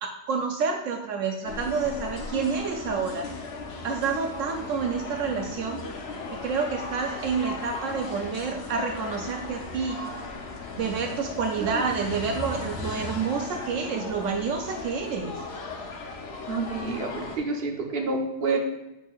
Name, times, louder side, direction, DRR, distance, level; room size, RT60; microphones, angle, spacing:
voice 1, 0.0-3.3 3.8-5.8 6.3-10.0 10.7-15.4, right 5 dB, 75° right, 4 dB, 0.9 m, -29 dB
sound 1, 1.4-17.4, left 3 dB, 60° left, 1.0 m, -37 dB
voice 2, 16.5-18.6, right 3 dB, 50° right, 2 dB, 1.1 m, -28 dB
7.2 x 6.4 x 2.4 m, 0.96 s
omnidirectional pair, 1.3 m